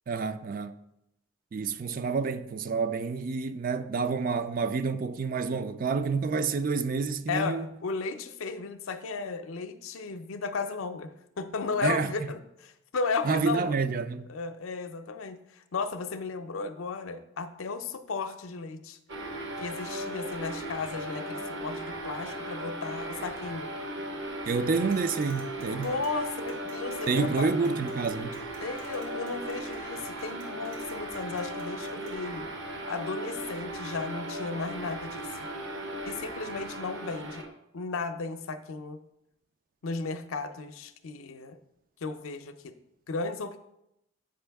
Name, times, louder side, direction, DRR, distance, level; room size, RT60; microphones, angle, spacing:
voice 1, 0.1-0.8 1.5-7.7 11.8-12.1 13.2-14.3 24.5-25.9 27.1-28.4, right 4 dB, 40° right, 0.3 m, -28 dB
voice 2, 7.3-13.7 14.3-19.0 19.6-23.7 25.6-27.5 28.6-32.5 32.9-35.3 36.1-37.5 37.7-39.0 39.8-41.6 42.0-42.7 43.1-43.6, left 4 dB, 80° left, 0.6 m, -35 dB
sound 1, 19.1-37.5, right 1 dB, 60° right, 0.9 m, -37 dB
sound 2, 24.9-32.1, right 3 dB, 80° right, 1.5 m, -53 dB
7.8 x 5.3 x 3.4 m
head